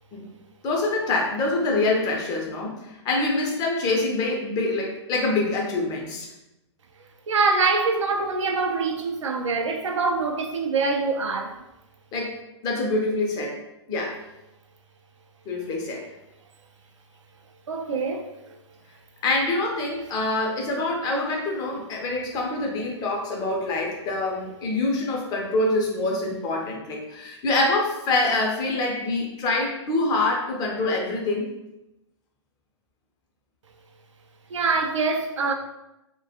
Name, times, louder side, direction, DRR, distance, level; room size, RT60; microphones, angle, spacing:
voice 1, 0.6-6.3 12.1-12.4 12.6-13.6 13.9-14.2 15.5-16.0 19.2-31.5, left 2 dB, 25° left, 0.5 m, -25 dB
voice 2, 7.3-11.5 17.7-18.5 34.5-35.5, right 4 dB, 80° right, 0.4 m, -24 dB
2.3 x 2.2 x 2.7 m
hypercardioid pair, 115°, 15 cm